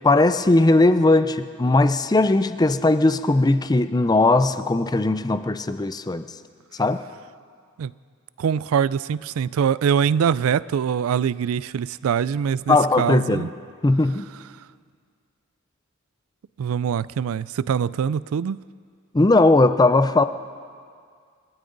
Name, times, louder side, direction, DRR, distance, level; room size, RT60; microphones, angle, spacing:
voice 1, 0.0-6.2 6.8-7.0 12.7-13.5 13.8-14.2 19.1-20.2, left 2 dB, 20° left, 11 dB, 0.5 m, -18 dB
voice 2, 8.4-13.5 16.6-18.6, right 7 dB, 85° right, 20 dB, 0.3 m, -23 dB
27.5 x 13.0 x 3.9 m, 2.1 s
head